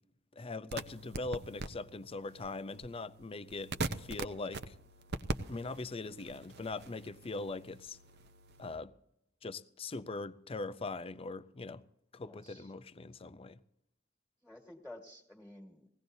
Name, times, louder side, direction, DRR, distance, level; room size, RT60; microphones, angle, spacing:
voice 1, 0.3-3.7 4.0-4.8 5.5-8.0 8.6-8.9 9.4-11.8 12.1-13.6, left 3 dB, 30° left, 0.5 m, -41 dB
sound 1, 0.7-8.8, right 3 dB, 55° right, 0.7 m, -43 dB
voice 2, 12.2-12.7 14.4-15.9, left 1 dB, ahead, 1.8 m, -52 dB
20.0 x 17.0 x 2.7 m
head